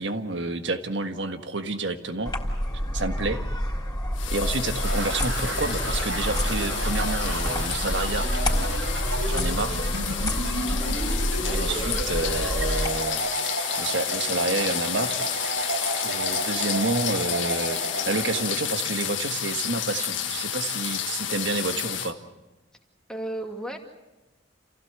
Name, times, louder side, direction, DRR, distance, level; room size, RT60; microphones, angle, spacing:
voice 1, 0.0-2.3 2.9-3.4 4.3-8.3 9.3-9.9 11.5-13.2 13.8-15.2 16.0-17.8 18.0-22.2, right 3 dB, 70° right, 7 dB, 1.6 m, -29 dB
sound 1, 2.2-12.9, equal, 20° left, 3.8 m, -28 dB
sound 2, 4.1-22.1, left 10 dB, 90° left, 1.6 m, -31 dB
sound 3, 4.8-18.4, right 2 dB, 90° right, 5.5 m, -32 dB
voice 2, 11.4-12.1 23.1-23.8, right 1 dB, 5° left, 2 dB, 2.4 m, -35 dB
28.0 x 16.0 x 8.2 m, 1.1 s
head